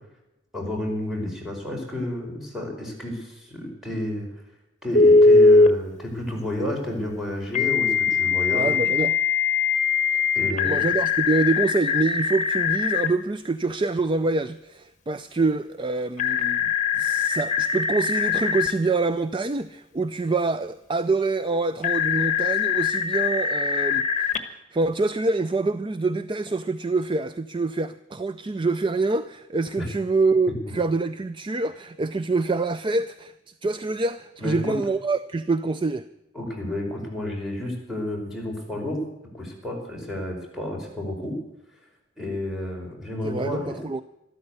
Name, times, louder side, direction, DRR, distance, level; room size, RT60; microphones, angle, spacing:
voice 1, 0.5-4.3 4.8-8.7 10.3-10.8 29.8-29.9 34.4-34.8 36.3-39.0 39.3-41.3 42.2-43.8, left 1 dB, ahead, 5.1 m, -31 dB
Telephone, 4.9-5.7 7.5-13.1 16.2-18.7 21.8-24.4, left 4 dB, 40° left, 1.3 m, -21 dB
voice 2, 8.5-9.2 10.6-24.3 24.7-36.1 43.2-44.0, right 3 dB, 25° right, 0.4 m, -26 dB
13.0 x 13.0 x 8.2 m
head